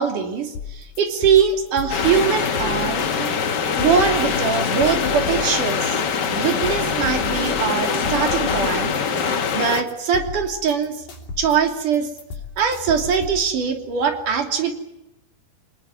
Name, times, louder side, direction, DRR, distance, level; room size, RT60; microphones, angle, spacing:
voice 1, 0.0-3.0 3.8-6.0 6.3-8.9 9.5-11.0 11.4-12.1 12.6-14.7, right 6 dB, 60° right, 5 dB, 4.3 m, -22 dB
sound 1, 0.6-13.5, left 5 dB, 60° left, 4.7 m, -35 dB
sound 2, 1.9-9.8, left 6 dB, 85° left, 0.9 m, -23 dB
sound 3, 2.5-9.3, right 2 dB, 85° right, 6.6 m, -38 dB
25.5 x 20.5 x 9.6 m, 0.90 s
omnidirectional pair, 4.3 m